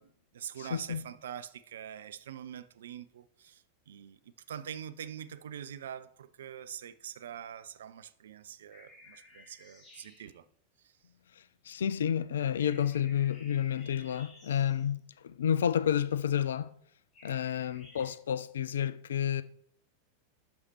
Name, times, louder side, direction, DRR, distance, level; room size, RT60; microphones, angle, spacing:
voice 1, 0.0-10.5 10.8-10.9, right 9 dB, 60° right, 0.4 m, -44 dB
voice 2, 0.6-1.0 11.4-16.7 17.2-19.4, left 9 dB, 65° left, 0.3 m, -30 dB
sound 1, 8.7-10.4 12.5-14.9 17.1-18.1, left 2 dB, 25° left, 2.4 m, -56 dB
10.5 x 6.4 x 3.0 m
figure-of-eight pair, 90°, 0 cm